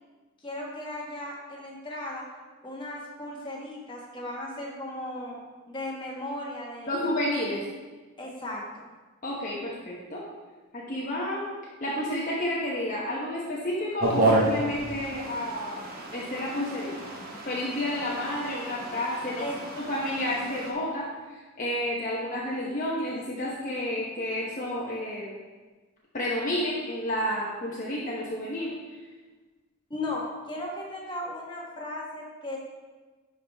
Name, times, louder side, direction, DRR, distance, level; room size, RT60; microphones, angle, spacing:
voice 1, 0.4-2.2 2.6-5.4 5.7-7.1 8.2-8.9 19.4-19.5 29.9-32.6, left 1 dB, 20° left, -3 dB, 1.3 m, -36 dB
voice 2, 6.9-7.6 9.2-10.2 10.7-11.4 11.8-15.8 16.1-16.9 17.5-19.5 19.9-25.3 26.1-29.0, left 1 dB, 35° left, -5 dB, 1.0 m, -30 dB
sound 1, 14.0-20.7, right 2 dB, 45° right, 1.2 m, -31 dB
11.0 x 4.9 x 3.5 m, 1.3 s
head